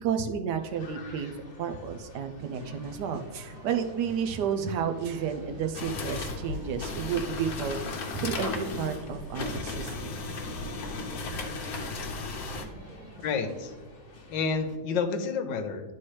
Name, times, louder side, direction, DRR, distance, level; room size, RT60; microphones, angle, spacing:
voice 1, 0.0-1.3 1.6-7.8 8.1-10.1, right 7 dB, 70° right, 6 dB, 1.2 m, -31 dB
sound 1, 0.6-14.8, left 3 dB, 40° left, 0.8 m, -50 dB
sound 2, 2.4-13.7, right 1 dB, 85° right, 1.7 m, -50 dB
sound 3, 5.7-12.6, left 3 dB, 60° left, 1.3 m, -35 dB
voice 2, 13.2-13.7 14.3-16.0, left 5 dB, 75° left, 7 dB, 1.4 m, -30 dB
11.5 x 4.3 x 3.2 m, 1.3 s
omnidirectional pair, 2.1 m